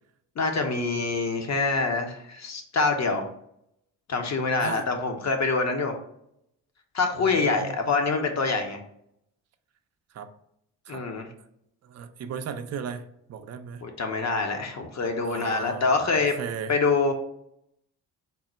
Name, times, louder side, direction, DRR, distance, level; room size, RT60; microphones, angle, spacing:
voice 1, 0.4-3.3 4.1-5.9 6.9-8.8 10.9-11.3 13.8-16.4 16.7-17.1, left 4 dB, 35° left, 4 dB, 0.9 m, -25 dB
voice 2, 7.3-7.8 10.1-10.3 10.9-11.0 11.8-13.8 15.2-15.9 16.2-16.7, right 7 dB, 35° right, 9 dB, 0.5 m, -36 dB
3.7 x 2.1 x 4.2 m, 0.75 s
hypercardioid pair, 50°, 46 cm